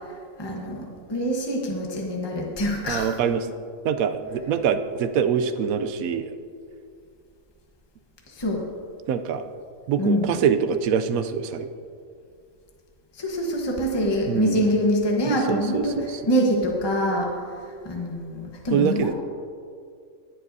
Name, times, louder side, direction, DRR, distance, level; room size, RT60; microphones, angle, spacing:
voice 1, 0.0-3.2 8.3-8.6 10.0-10.4 13.1-19.1, equal, 20° left, -1 dB, 1.2 m, -25 dB
voice 2, 2.9-3.4 3.8-6.3 9.1-9.4 9.9-11.7 14.3-14.7 15.3-16.2 18.7-19.1, right 7 dB, 90° right, 10 dB, 1.0 m, -24 dB
19.0 x 7.6 x 2.7 m, 2.3 s
omnidirectional pair, 1.5 m